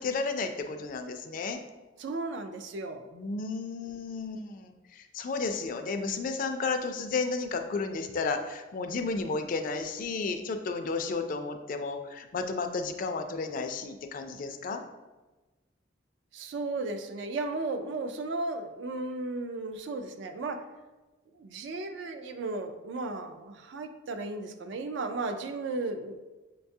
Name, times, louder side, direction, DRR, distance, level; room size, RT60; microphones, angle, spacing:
voice 1, 0.0-1.6 3.1-14.8, left 4 dB, 45° left, 6 dB, 0.3 m, -33 dB
voice 2, 2.0-3.1 16.3-20.6 21.4-26.2, right 3 dB, 65° right, 7 dB, 0.3 m, -35 dB
6.2 x 2.3 x 2.7 m, 1.2 s
head